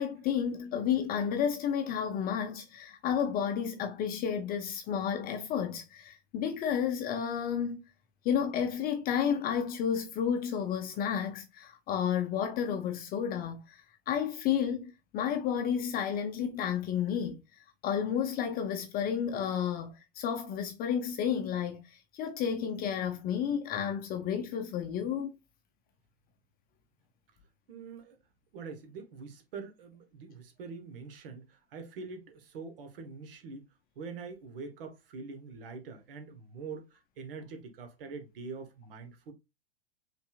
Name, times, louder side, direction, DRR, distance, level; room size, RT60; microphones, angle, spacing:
voice 1, 0.0-7.8 8.2-17.4 17.8-25.4, left 8 dB, 30° left, 0.6 m, -31 dB
voice 2, 27.7-28.2 28.5-39.3, right 4 dB, 65° right, 1.1 m, -44 dB
5.4 x 3.3 x 2.4 m
figure-of-eight pair, 95°, 30 cm